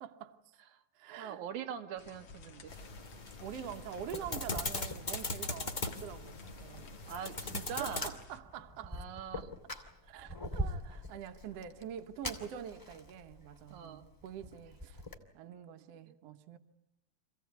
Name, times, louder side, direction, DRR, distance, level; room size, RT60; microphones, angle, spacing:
voice 1, 0.0-0.4 1.0-1.4 3.4-7.0 7.5-9.0 9.4-9.5 10.0-15.0 15.3-16.6, right 9 dB, 65° right, 2.0 m, -45 dB
voice 2, 1.2-2.7 7.1-8.1 8.8-9.5 13.7-14.0 14.4-14.5 16.1-16.2, right 8 dB, 90° right, 2.7 m, -42 dB
sound 1, 2.0-8.4, left 4 dB, 50° left, 1.8 m, -54 dB
Fire, 2.2-15.2, equal, 10° left, 2.1 m, -45 dB
sound 2, 2.7-8.1, left 2 dB, 30° left, 0.9 m, -40 dB
26.5 x 16.5 x 9.4 m
omnidirectional pair, 3.3 m